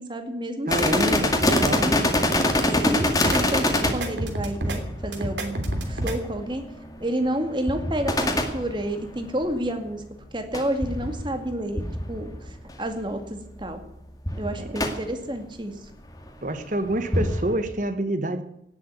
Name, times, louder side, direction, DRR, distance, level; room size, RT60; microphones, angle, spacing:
voice 1, 0.0-1.3 1.8-2.1 2.8-3.7 3.9-6.6 7.0-10.0 10.3-11.8 12.1-13.8 14.4-15.8, right 1 dB, 25° right, 6 dB, 2.1 m, -30 dB
sound 1, 0.7-9.6 10.5-12.9 13.2-13.3 13.6-13.8 14.3-14.9 16.1-16.3 16.9-17.5, left 1 dB, 20° left, 2.1 m, -25 dB
voice 2, 0.7-2.0 14.6-14.8 16.4-18.4, right 1 dB, 45° right, 9 dB, 1.2 m, -27 dB
sound 2, 3.0-3.4 3.8-4.8 5.1-6.2, right 1 dB, 85° right, 3.0 m, -29 dB
18.0 x 7.8 x 9.5 m, 0.83 s
head